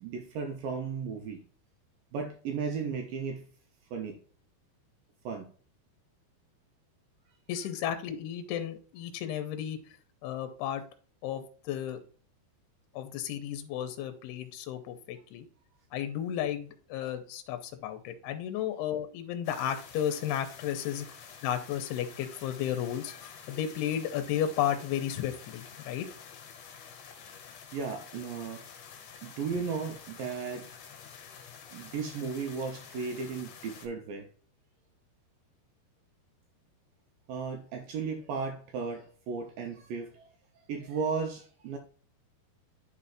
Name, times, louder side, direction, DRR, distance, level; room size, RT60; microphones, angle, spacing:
voice 1, 0.0-1.4 2.1-3.5 3.9-4.2 5.3-5.5 27.7-28.7 29.2-30.7 31.7-34.3 37.3-40.2 40.7-41.8, right 5 dB, 80° right, 2.0 m, -35 dB
voice 2, 7.5-9.8 10.2-10.8 11.2-12.0 12.9-15.5 15.9-21.1 21.4-26.1, left 10 dB, 85° left, 2.6 m, -33 dB
sound 1, 19.4-33.9, left 7 dB, 65° left, 2.2 m, -49 dB
11.5 x 4.2 x 2.4 m
omnidirectional pair, 4.8 m